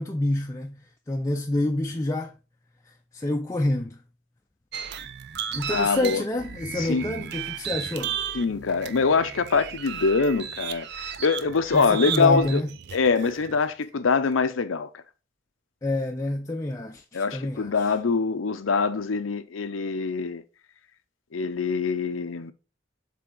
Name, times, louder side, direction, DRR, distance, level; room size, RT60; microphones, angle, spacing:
voice 1, 0.0-2.4 2.9-4.0 5.5-8.2 11.7-12.7 15.8-17.9, left 1 dB, 15° left, 0.4 m, -28 dB
sound 1, 4.7-13.6, right 8 dB, 60° right, 0.6 m, -34 dB
voice 2, 5.7-6.2 6.8-7.1 8.3-12.6 12.9-14.9 17.1-20.4 21.3-22.5, left 4 dB, 85° left, 0.6 m, -24 dB
7.5 x 3.5 x 3.8 m
head